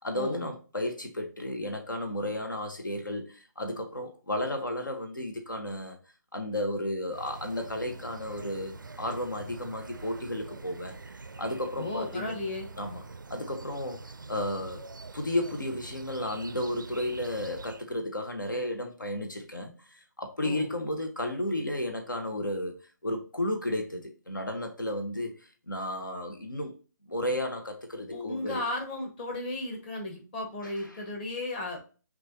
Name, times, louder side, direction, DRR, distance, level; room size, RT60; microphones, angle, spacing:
voice 1, 0.0-6.0 6.3-11.0 11.4-12.3 12.8-13.0 13.3-14.0 14.3-14.9 15.1-22.8 23.0-25.3 25.7-26.7 27.1-28.6, left 1 dB, 85° left, 0.9 m, -33 dB
sound 1, 7.1-17.8, right 3 dB, 85° right, 0.4 m, -45 dB
voice 2, 11.8-12.7 20.4-20.7 28.1-31.8, left 2 dB, 30° left, 1.1 m, -35 dB
6.1 x 2.5 x 2.6 m
figure-of-eight pair, 145°, 10 cm